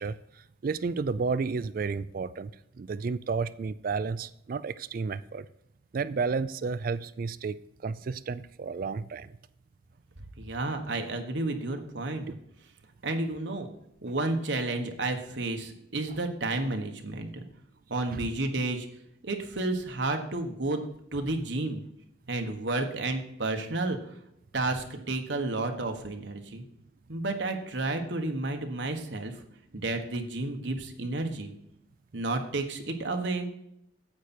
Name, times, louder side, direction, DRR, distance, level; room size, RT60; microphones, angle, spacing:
voice 1, 0.0-2.5 2.8-5.5 5.9-9.4 12.3-12.4 18.1-18.3, right 4 dB, 50° right, 16 dB, 0.4 m, -32 dB
voice 2, 10.4-12.3 13.0-13.7 14.0-17.5 17.9-18.9 19.2-20.8 21.1-21.8 22.3-24.0 24.5-26.6 27.1-29.3 29.7-31.5 32.1-33.5, right 2 dB, 70° right, 4 dB, 1.4 m, -31 dB
9.4 x 8.3 x 4.4 m, 0.77 s
head